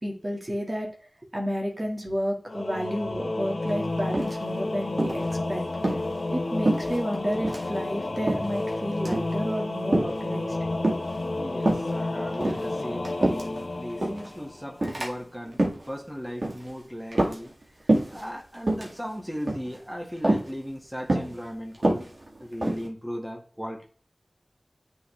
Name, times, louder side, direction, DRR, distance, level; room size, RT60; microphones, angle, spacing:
voice 1, 0.0-0.9 1.3-5.2 5.5-6.0 6.3-10.6, equal, 35° right, -1 dB, 1.9 m, -31 dB
Singing / Musical instrument, 2.5-14.9, left 2 dB, 70° left, 1.0 m, -31 dB
sound 1, 4.1-4.6 5.0-5.3 5.7-6.0 6.6-7.2 7.4-7.7 8.3-8.6 9.0-9.3 9.9-10.2 10.8-11.2 11.6-11.9 12.3-13.6 14.0-14.3 14.8-15.1 15.5-15.9 16.4-16.7 17.1-17.6 17.9-18.2 18.6-18.9 19.5-19.8 20.2-20.5 21.1-21.4 21.7-22.9, right 1 dB, 60° right, 2.1 m, -26 dB
voice 2, 11.4-17.5 17.8-22.1 22.4-23.8, equal, 5° right, 0 dB, 1.8 m, -37 dB
9.3 x 4.0 x 3.3 m, 0.42 s
wide cardioid pair, 50°, 0 cm